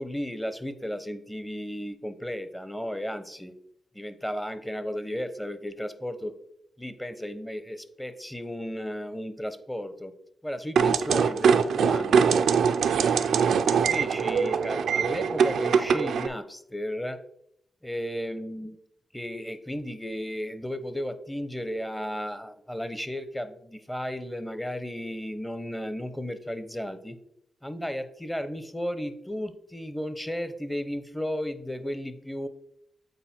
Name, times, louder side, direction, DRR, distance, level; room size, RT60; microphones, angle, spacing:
voice 1, 0.0-3.5 3.9-6.3 6.8-10.1 10.4-12.2 13.6-17.2 17.8-18.8 19.1-27.2 27.6-32.5, equal, 10° left, 11 dB, 0.8 m, -34 dB
sound 1, 10.8-16.3, right 6 dB, 85° right, 0.4 m, -23 dB
8.0 x 4.2 x 4.4 m, 0.74 s
cardioid pair, 55°, 0 cm